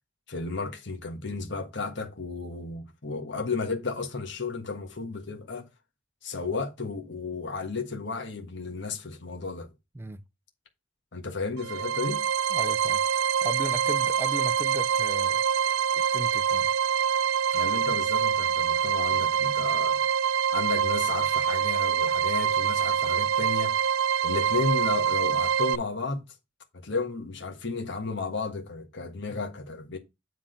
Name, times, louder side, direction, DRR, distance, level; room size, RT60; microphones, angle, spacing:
voice 1, 0.3-5.7 6.2-9.7 11.1-12.2 17.5-20.0 20.5-23.8 24.2-26.2 26.7-30.0, left 4 dB, 60° left, 1.4 m, -33 dB
sound 1, 11.6-25.8, right 8 dB, 80° right, 0.3 m, -25 dB
voice 2, 12.5-13.0 13.4-15.4 15.9-16.7 29.3-29.4, right 1 dB, 10° right, 0.4 m, -36 dB
7.9 x 3.6 x 5.1 m
head